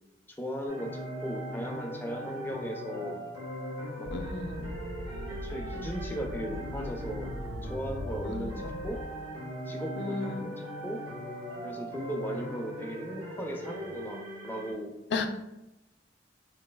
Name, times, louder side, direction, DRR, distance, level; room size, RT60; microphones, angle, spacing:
voice 1, 0.4-3.2 4.0-4.1 5.4-7.3 7.7-9.0 9.7-10.2 10.6-11.0 11.6-14.9, equal, 10° left, 1 dB, 0.4 m, -37 dB
sound 1, 0.7-14.7, equal, 85° right, 1.3 m, -40 dB
sound 2, 4.0-9.1, equal, 70° right, 0.4 m, -40 dB
voice 2, 4.1-4.8 8.2-8.6 10.0-10.5 15.1-15.3, left 3 dB, 75° left, 6 dB, 0.4 m, -34 dB
3.9 x 2.7 x 2.2 m, 0.93 s
head